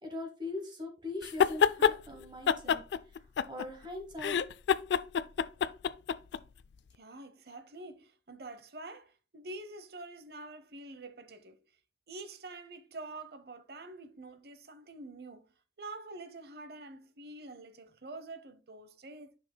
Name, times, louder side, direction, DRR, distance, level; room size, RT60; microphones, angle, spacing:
voice 1, 0.0-2.8 3.5-4.4, left 2 dB, 25° right, 1.2 m, -41 dB
sound 1, 1.2-2.0 2.5-3.9 4.2-6.4, left 7 dB, 80° left, 0.4 m, -27 dB
voice 2, 6.9-11.6 12.1-15.5 15.8-19.4, right 2 dB, 65° right, 0.8 m, -46 dB
10.5 x 5.8 x 2.2 m
head